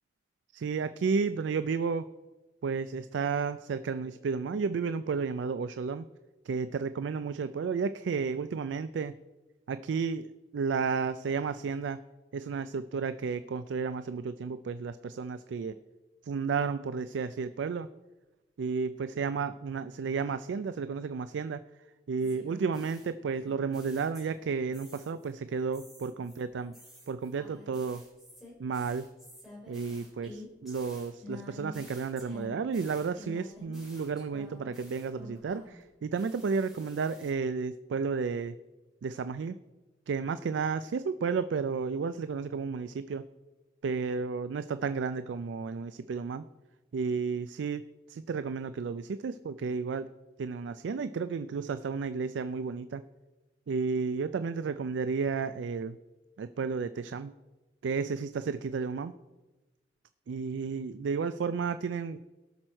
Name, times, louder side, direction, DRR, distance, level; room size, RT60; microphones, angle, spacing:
voice 1, 0.5-2.1 2.6-6.0 6.5-9.1 9.7-10.3 10.5-12.0 12.3-15.7 16.2-17.9 18.6-21.6 22.1-26.7 27.1-28.0 28.6-29.1 29.7-38.6 39.0-39.6 40.1-43.2 43.8-46.4 46.9-47.8 48.1-50.1 50.4-53.0 53.7-56.0 56.4-57.3 57.8-59.1 60.3-62.2, right 5 dB, 75° right, 12 dB, 0.4 m, -32 dB
sound 1, 22.2-24.5 24.7-25.3 25.7-35.8 36.1-37.3, left 2 dB, ahead, 3.7 m, -50 dB
18.5 x 6.2 x 4.4 m, 1.2 s
head